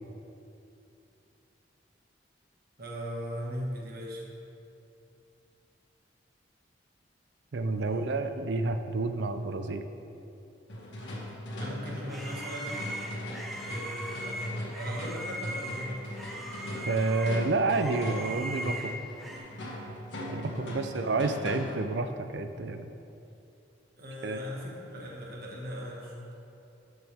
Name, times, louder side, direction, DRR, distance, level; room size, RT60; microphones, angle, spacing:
voice 1, 2.8-4.2 7.7-8.3 11.1-11.2 11.6-12.8 13.6-16.1 20.2-20.8 24.0-26.3, equal, 55° right, -3 dB, 1.7 m, -39 dB
voice 2, 7.5-9.8 16.9-18.9 20.3-22.9 24.2-24.4, right 3 dB, 75° right, 9 dB, 0.5 m, -29 dB
sound 1, 10.7-21.9, left 1 dB, 80° left, 1.8 m, -39 dB
sound 2, 11.5-19.4, right 1 dB, ahead, 0.9 m, -39 dB
13.5 x 6.4 x 3.5 m, 2.7 s
head